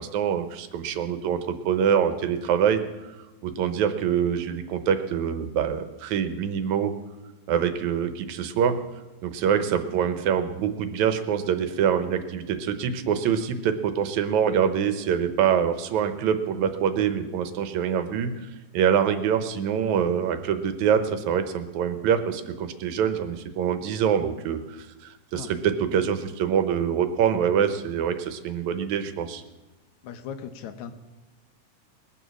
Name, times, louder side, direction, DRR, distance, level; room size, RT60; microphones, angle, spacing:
voice 1, 0.0-3.1 3.4-6.9 7.5-8.8 9.2-18.3 18.7-29.4, right 8 dB, 75° right, 9 dB, 2.1 m, -25 dB
voice 2, 30.0-30.9, left 8 dB, 70° left, 9 dB, 2.0 m, -37 dB
21.0 x 7.1 x 6.3 m, 1.1 s
omnidirectional pair, 3.7 m